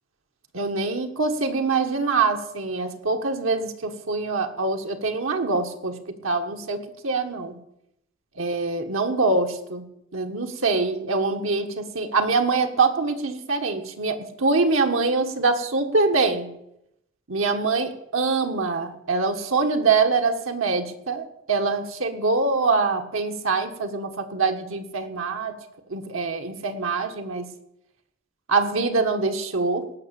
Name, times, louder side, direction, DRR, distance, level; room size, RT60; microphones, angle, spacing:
voice 1, 0.5-6.0 6.2-7.6 8.4-9.8 10.1-16.5 17.3-25.5 25.9-27.5 28.5-29.9, right 4 dB, 75° right, 4 dB, 1.5 m, -24 dB
18.5 x 6.3 x 8.3 m, 0.82 s
head